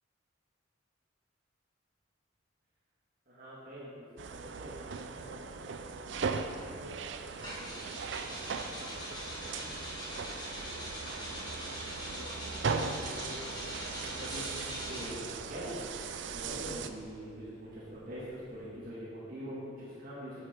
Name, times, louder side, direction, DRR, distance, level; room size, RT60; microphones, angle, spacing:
voice 1, 3.3-7.0 7.4-7.8 8.2-9.8 10.5-10.9 11.3-12.3 12.8-13.4 13.9-15.9 16.3-20.5, equal, 45° right, -9 dB, 1.9 m, -45 dB
sound 1, 4.2-16.9, right 5 dB, 65° right, 0.5 m, -39 dB
sound 2, 7.4-15.3 16.1-18.6, equal, 20° left, 1.8 m, -43 dB
8.3 x 8.1 x 4.4 m, 2.3 s
head